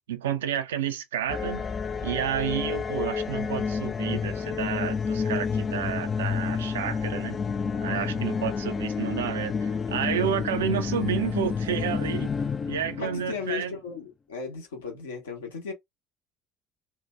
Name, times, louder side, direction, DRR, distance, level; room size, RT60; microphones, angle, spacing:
voice 1, 0.1-1.7 2.0-7.4 7.8-12.3 12.7-13.8, right 9 dB, 75° right, 0.3 m, -30 dB
sound 1, 1.3-13.5, left 5 dB, 30° left, 0.3 m, -29 dB
voice 2, 7.9-8.4 13.0-15.7, left 5 dB, 75° left, 0.8 m, -36 dB
2.7 x 2.1 x 3.2 m
figure-of-eight pair, 55°, 0 cm